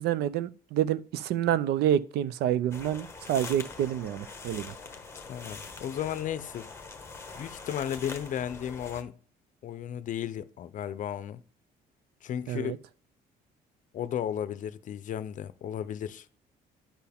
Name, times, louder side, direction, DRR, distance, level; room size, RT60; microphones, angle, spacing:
voice 1, 0.0-4.7 12.5-12.8, right 11 dB, 75° right, 0.5 m, -28 dB
sound 1, 2.7-9.0, left 4 dB, 15° left, 1.2 m, -43 dB
voice 2, 5.3-6.7 7.3-9.1 9.6-11.4 12.2-12.8 13.9-16.3, left 9 dB, 50° left, 0.6 m, -34 dB
10.5 x 4.6 x 3.5 m
cardioid pair, 110°, 17 cm